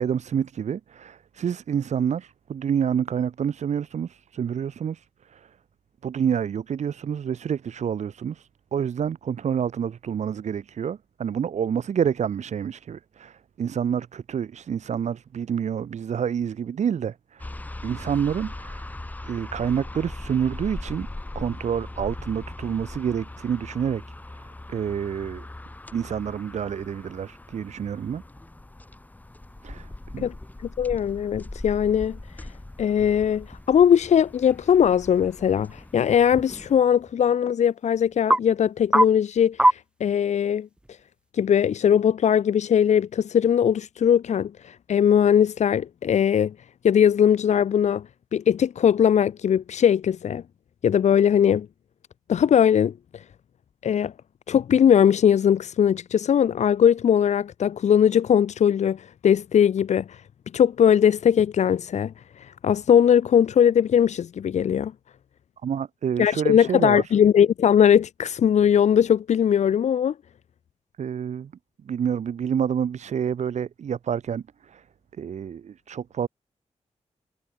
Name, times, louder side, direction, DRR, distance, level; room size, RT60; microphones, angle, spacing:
voice 1, 0.0-5.5 6.0-17.5 17.8-18.9 19.2-21.1 21.4-24.0 24.3-25.5 25.9-28.2 29.6-30.3 65.6-67.0 71.0-71.5 71.8-74.8 75.2-76.3, right 8 dB, 90° right, 2.0 m, -28 dB
sound 1, 17.4-36.8, left 2 dB, 15° left, 2.9 m, -40 dB
sound 2, 29.3-41.3, right 1 dB, 10° right, 1.5 m, -30 dB
voice 2, 30.8-32.2 32.8-40.7 41.3-46.5 46.8-48.0 48.3-50.4 50.8-51.7 52.3-52.9 53.8-54.1 54.5-60.2 60.5-62.1 62.6-64.9 66.2-70.1, left 8 dB, 85° left, 0.8 m, -20 dB
wide cardioid pair, 155°, 12 cm